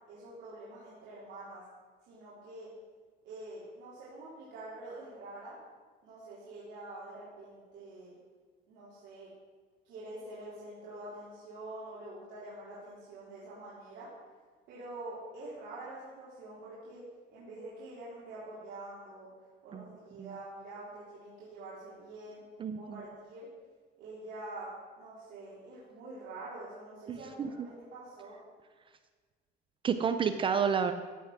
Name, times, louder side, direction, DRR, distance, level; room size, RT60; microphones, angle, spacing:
voice 1, 0.1-1.6 2.1-2.7 3.2-5.6 6.0-8.1 8.7-9.3 9.9-14.1 14.7-17.0 17.3-19.3 19.6-22.4 22.7-23.5 24.0-24.7 25.0-28.4, right 2 dB, 65° right, -9 dB, 3.7 m, -46 dB
voice 2, 27.1-27.5 29.8-30.9, right 7 dB, 25° right, 9 dB, 0.4 m, -30 dB
14.5 x 6.9 x 6.0 m, 1.5 s
cardioid pair, 170°, 20 cm